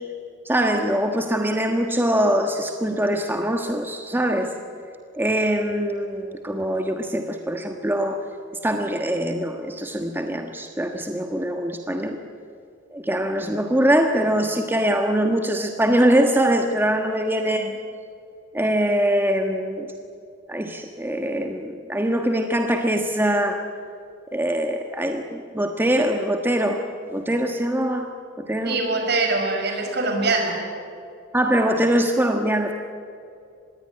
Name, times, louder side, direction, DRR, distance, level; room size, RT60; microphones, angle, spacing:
voice 1, 0.4-4.5 5.1-8.2 8.6-12.2 12.9-17.7 18.5-19.9 20.5-23.6 24.3-26.8 27.1-28.1 28.4-28.8 31.3-32.7, right 1 dB, 10° right, 4 dB, 1.3 m, -23 dB
voice 2, 17.4-17.7 28.6-30.7, right 3 dB, 60° right, 3 dB, 5.9 m, -24 dB
25.5 x 20.5 x 9.9 m, 2.5 s
head